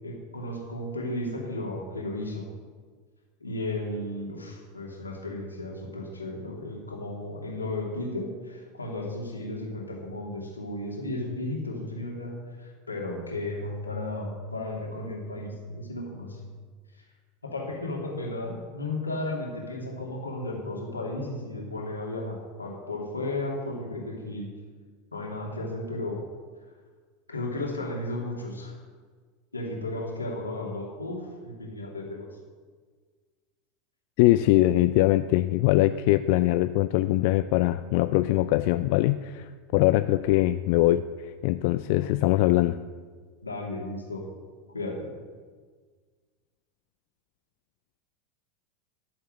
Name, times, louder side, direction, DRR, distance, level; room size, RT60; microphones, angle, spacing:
voice 1, 0.0-2.5 3.4-16.5 16.9-17.0 17.4-24.5 25.1-26.2 27.3-28.8 29.5-32.3 43.4-44.2 44.7-45.1, left 2 dB, 90° left, -1 dB, 2.7 m, -34 dB
voice 2, 34.2-42.8, left 16 dB, 55° left, 12 dB, 0.4 m, -22 dB
13.0 x 7.2 x 7.6 m, 1.5 s
figure-of-eight pair, 85°, 0 cm